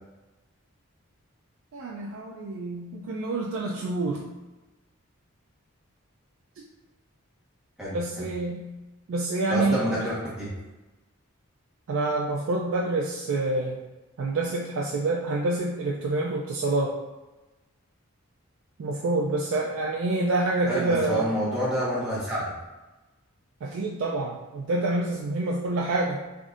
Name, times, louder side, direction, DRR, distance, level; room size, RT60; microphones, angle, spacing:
voice 1, 1.7-4.2 7.9-8.7 9.1-10.0 11.9-13.8 14.2-16.9 18.8-21.3 23.6-26.2, right 2 dB, 60° right, -3 dB, 0.3 m, -27 dB
voice 2, 7.8-8.3 9.5-10.5 20.7-22.5, equal, 5° right, -10 dB, 1.0 m, -28 dB
3.4 x 2.6 x 2.4 m, 1.1 s
head